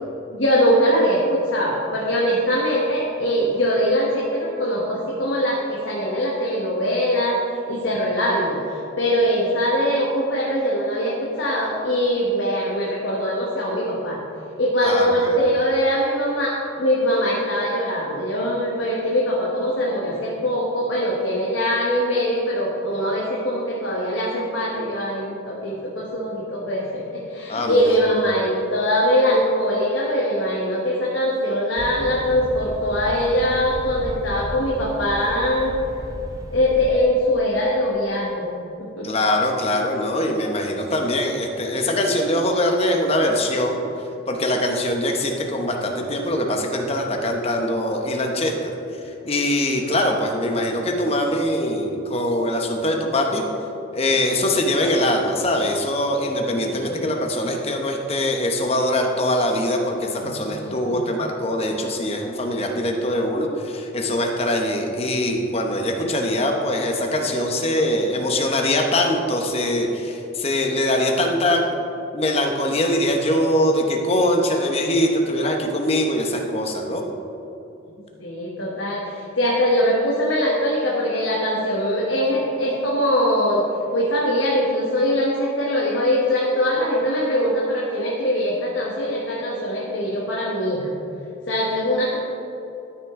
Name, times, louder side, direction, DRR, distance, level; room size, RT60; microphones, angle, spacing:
voice 1, 0.3-7.4 7.7-14.2 14.6-35.8 36.5-38.5 38.8-39.1 56.7-57.1 60.2-60.4 60.6-61.0 78.2-83.7 83.9-90.9 91.5-92.1, equal, 75° left, -4 dB, 1.3 m, -22 dB
voice 2, 14.8-15.3 27.5-28.0 39.0-43.8 44.3-48.7 49.2-53.4 53.9-71.6 72.1-77.0, left 1 dB, 30° left, 2 dB, 0.9 m, -22 dB
sound 1, 31.8-36.9, equal, 15° right, 0.6 m, -34 dB
12.5 x 6.0 x 3.7 m, 2.9 s
head